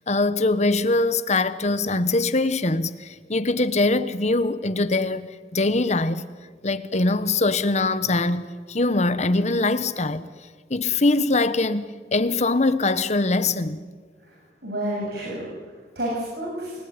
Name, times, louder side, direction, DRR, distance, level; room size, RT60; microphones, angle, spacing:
voice 1, 0.1-6.3 6.6-10.3 10.7-11.8 12.1-13.8, left 2 dB, 40° left, 1.2 m, -22 dB
voice 2, 14.2-16.8, right 1 dB, 65° right, 7.8 m, -31 dB
29.0 x 18.5 x 9.7 m
head